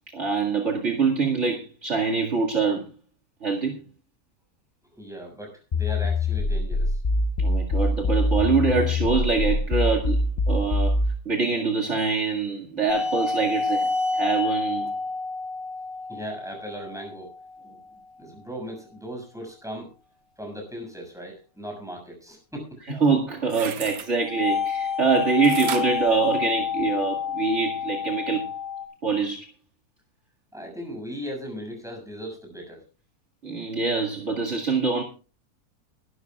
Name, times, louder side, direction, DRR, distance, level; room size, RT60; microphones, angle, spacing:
voice 1, 0.1-2.8 3.4-3.8 7.4-11.0 11.3-14.9 22.9-28.5 29.0-29.5 33.4-35.0, right 4 dB, 50° right, 3 dB, 2.4 m, -24 dB
voice 2, 4.9-7.0 16.1-17.3 17.6-17.8 18.2-19.9 20.4-22.8 30.5-32.8, equal, ahead, 2 dB, 6.7 m, -38 dB
sound 1, 5.7-11.2, left 2 dB, 70° left, 0.3 m, -24 dB
sound 2, 12.9-17.8 24.3-28.8, left 5 dB, 85° left, 4.5 m, -29 dB
sound 3, 23.4-24.1 25.4-27.0 27.5-27.6, right 9 dB, 75° right, 1.3 m, -35 dB
22.0 x 12.5 x 2.4 m, 0.34 s
omnidirectional pair, 1.6 m